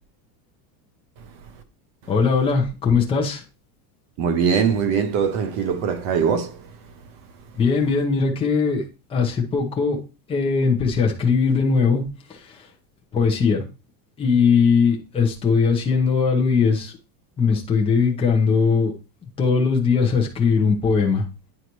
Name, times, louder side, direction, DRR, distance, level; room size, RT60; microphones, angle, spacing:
voice 1, 2.1-3.4 7.5-10.0 10.3-12.0 12.3-12.7 13.1-13.6 14.2-17.0 17.4-18.9 19.4-21.2, left 5 dB, 10° left, 0.7 m, -20 dB
voice 2, 4.2-6.7, right 6 dB, 30° right, 0.5 m, -22 dB
9.6 x 4.0 x 3.0 m
supercardioid pair, 180°, 50 cm